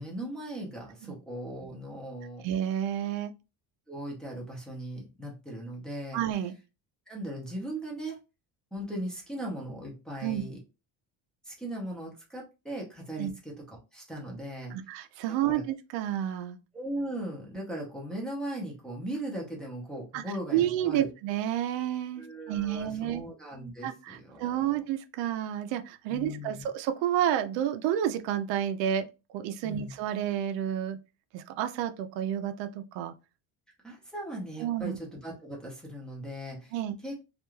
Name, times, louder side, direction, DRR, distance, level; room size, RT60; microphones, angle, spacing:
voice 1, 0.0-2.4 3.9-6.2 7.1-8.2 8.7-10.6 11.4-14.8 15.4-15.6 16.7-21.1 22.2-24.6 26.1-26.7 29.6-30.0 33.8-36.7 37.0-37.2, right 1 dB, ahead, 0.5 m, -38 dB
voice 2, 2.4-3.3 6.1-6.5 10.2-10.4 13.2-13.3 14.7-16.6 20.1-20.2 20.5-23.2 23.8-29.1 29.3-31.0 31.3-33.1 34.6-35.0 36.7-37.0, right 11 dB, 85° right, 0.5 m, -30 dB
2.4 x 2.2 x 3.0 m
cardioid pair, 170°, 42 cm